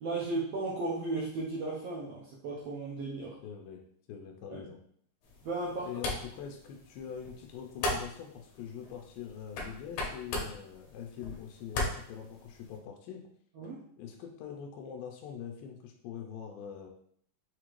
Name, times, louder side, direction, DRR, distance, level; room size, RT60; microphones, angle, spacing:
voice 1, 0.0-3.3 4.5-4.6 5.4-5.9 13.5-13.8, right 2 dB, 85° right, -6 dB, 1.4 m, -35 dB
voice 2, 3.4-3.8 4.1-4.8 5.8-13.3 14.0-16.9, left 8 dB, 85° left, 2 dB, 2.3 m, -43 dB
sound 1, 5.2-12.8, left 2 dB, 70° left, 1.9 m, -39 dB
6.1 x 2.5 x 3.1 m, 0.64 s
omnidirectional pair, 3.9 m